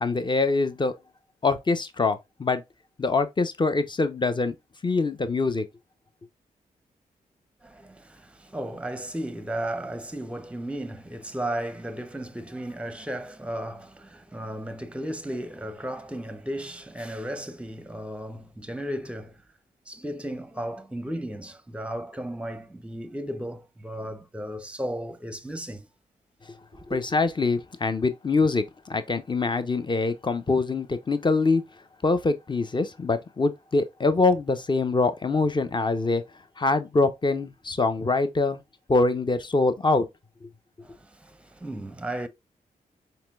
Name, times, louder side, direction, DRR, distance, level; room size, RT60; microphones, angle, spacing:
voice 1, 0.0-0.9 1.4-2.6 3.0-4.5 4.8-5.6 26.9-31.6 32.0-36.2 36.6-38.6 38.9-40.1 40.4-40.5, left 3 dB, 30° left, 0.8 m, -24 dB
voice 2, 7.6-19.4 19.9-25.8 26.7-27.0 40.8-42.3, right 1 dB, 5° right, 0.7 m, -35 dB
4.3 x 3.2 x 2.3 m
supercardioid pair, 50°, 16 cm